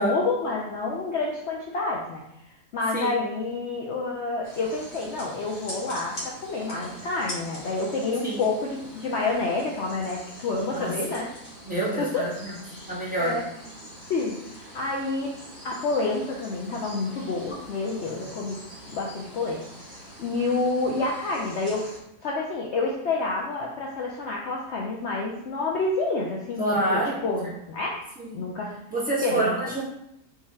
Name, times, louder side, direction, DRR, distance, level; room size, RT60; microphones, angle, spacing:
voice 1, 0.0-2.2 2.7-11.3 12.0-12.2 13.2-13.4 14.1-15.3 15.6-18.5 18.9-19.6 20.2-21.9 22.2-26.6 26.9-28.0 28.3-28.7 29.2-29.8, left 3 dB, 75° left, -2 dB, 0.6 m, -28 dB
sound 1, 4.4-22.0, equal, 35° left, 1.4 m, -43 dB
voice 2, 11.6-12.5 12.9-13.4 26.6-27.1 28.2-28.4 28.9-29.8, right 1 dB, 5° right, -8 dB, 1.2 m, -27 dB
4.6 x 2.8 x 3.5 m, 0.79 s
omnidirectional pair, 1.8 m